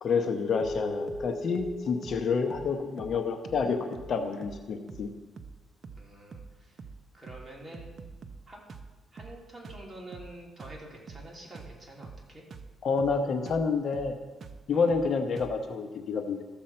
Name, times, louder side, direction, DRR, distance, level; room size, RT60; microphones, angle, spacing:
voice 1, 0.0-5.1 12.8-14.2 14.7-16.4, left 5 dB, 55° left, 6 dB, 0.9 m, -28 dB
Keyboard (musical), 0.5-3.5, left 1 dB, 20° left, 0.8 m, -39 dB
sound 1, 0.6-0.8 1.1-1.3 1.5-1.8 2.0-2.2 2.5-2.7 3.0-3.2 3.4-3.7 3.9-4.1 4.4-4.6 4.9-5.1 5.4-5.6 5.8-6.1 6.3-6.5 6.8-7.0 7.3-7.5 7.7-8.4 8.7-8.9 9.2-9.4 9.6-9.9 10.1-10.3 10.6-10.8 11.1-11.3 11.5-11.8 12.0-12.2 12.5-12.7 13.0-13.2 13.5-13.7 13.9-14.1 14.4-14.6 14.9-15.1 15.4-15.6, right 5 dB, 50° right, 0.7 m, -45 dB
voice 2, 6.0-6.8 7.1-8.0 8.5-8.7 9.1-12.4 14.7-14.9, right 1 dB, 20° right, -3 dB, 2.9 m, -47 dB
14.0 x 7.3 x 4.3 m, 1.3 s
cardioid pair, 90°, 0 cm